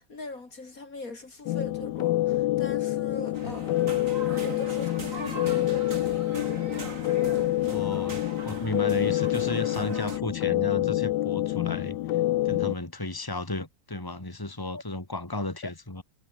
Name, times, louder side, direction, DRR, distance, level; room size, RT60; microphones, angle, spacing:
voice 1, 0.0-3.9 4.4-6.3 14.7-14.8, left 3 dB, 50° left, 3.4 m, -40 dB
sound 1, 1.5-12.7, left 16 dB, 80° left, 1.3 m, -27 dB
sound 2, 3.3-10.2, right 3 dB, 45° right, 3.5 m, -40 dB
voice 2, 7.7-12.0 12.4-16.0, left 2 dB, 10° left, 3.0 m, -34 dB
omnidirectional pair, 1.9 m